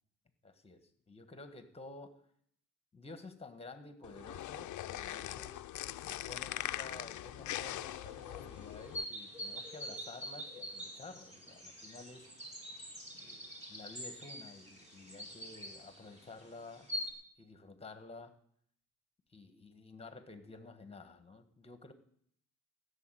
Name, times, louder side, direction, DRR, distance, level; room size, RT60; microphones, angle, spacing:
voice 1, 0.4-2.2 2.9-5.6 6.0-12.3 13.1-16.9 17.4-18.4 19.3-21.9, left 3 dB, 15° left, 9 dB, 1.5 m, -52 dB
sound 1, 4.0-9.0, left 13 dB, 55° left, 0.6 m, -41 dB
sound 2, 7.7-17.1, equal, 20° right, 3.6 m, -46 dB
15.5 x 7.1 x 9.1 m, 0.65 s
cardioid pair, 130°, 35 cm